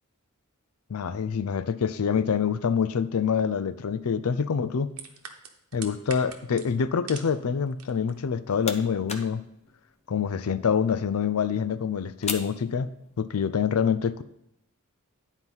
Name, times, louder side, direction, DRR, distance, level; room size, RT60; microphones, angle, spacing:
voice 1, 0.9-4.9 5.7-9.4 10.1-12.9 13.2-14.2, left 6 dB, 75° left, 14 dB, 0.5 m, -26 dB
sound 1, 4.9-7.4 7.7-8.1 8.5-8.6, right 7 dB, 85° right, 1.0 m, -42 dB
sound 2, 8.1-13.4, left 5 dB, 30° left, 0.7 m, -41 dB
9.8 x 4.5 x 5.4 m, 0.81 s
head